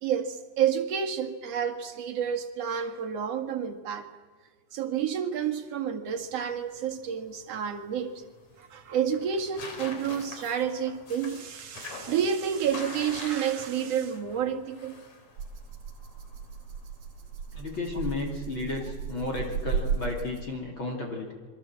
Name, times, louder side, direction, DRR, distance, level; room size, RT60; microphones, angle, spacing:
voice 1, 0.0-4.1 4.7-8.2 8.6-15.0, right 8 dB, 55° right, 5 dB, 2.8 m, -30 dB
sound 1, 6.1-18.3, left 3 dB, 55° left, 4.6 m, -46 dB
Rattle (instrument), 15.4-20.7, right 6 dB, 85° right, 3.1 m, -35 dB
voice 2, 17.5-21.3, left 3 dB, 40° left, 0 dB, 3.5 m, -33 dB
27.0 x 24.0 x 7.5 m, 1.4 s
omnidirectional pair, 3.7 m